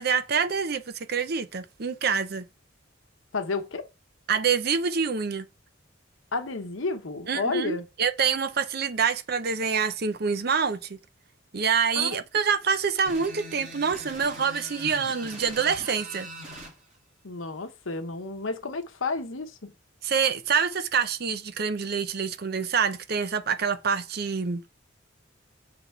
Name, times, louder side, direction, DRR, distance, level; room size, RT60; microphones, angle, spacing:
voice 1, 0.0-2.4 4.3-5.5 7.3-11.0 11.5-16.3 20.0-24.7, right 6 dB, 55° right, 0.6 m, -26 dB
voice 2, 3.3-3.9 6.3-7.8 11.9-12.2 17.2-19.7, left 3 dB, 85° left, 1.0 m, -31 dB
sound 1, 13.1-16.7, right 1 dB, 35° right, 3.4 m, -41 dB
6.7 x 4.0 x 4.5 m
head